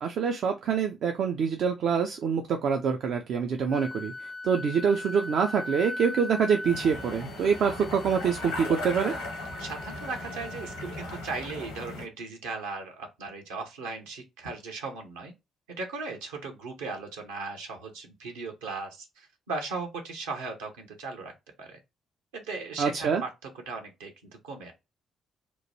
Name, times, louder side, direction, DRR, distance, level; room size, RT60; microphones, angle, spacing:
voice 1, 0.0-9.1 22.8-23.2, right 6 dB, 60° right, 0.4 m, -26 dB
Wind instrument woodwind instrument, 3.7-11.4, left 1 dB, 30° left, 0.4 m, -40 dB
sound 1, 6.6-12.1, left 2 dB, 80° left, 0.9 m, -38 dB
voice 2, 9.6-15.3 15.7-21.3 21.6-21.8 22.3-23.3 23.7-24.1 24.4-24.7, right 3 dB, 75° right, 0.8 m, -37 dB
2.9 x 2.2 x 2.6 m
figure-of-eight pair, 40°, 0 cm